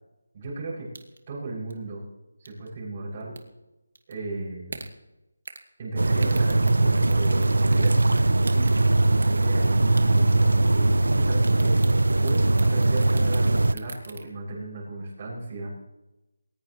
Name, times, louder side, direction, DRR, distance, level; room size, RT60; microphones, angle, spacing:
voice 1, 0.3-0.9 1.3-2.0 2.4-3.3 4.1-4.8 5.8-15.7, right 2 dB, 25° right, -5 dB, 7.0 m, -35 dB
sound 1, 0.9-1.3 1.7-1.8 2.5-2.7 3.2-3.4 4.0-4.2 4.7-4.9 5.5-5.7 6.2-7.5 7.7-8.9 9.2-9.7 10.0-10.4 10.7-11.2 11.5-14.2, right 3 dB, 60° right, 2.2 m, -40 dB
sound 2, 6.0-13.7, right 2 dB, 85° right, 0.7 m, -21 dB
20.5 x 19.0 x 3.2 m, 0.99 s
figure-of-eight pair, 170°, 0 cm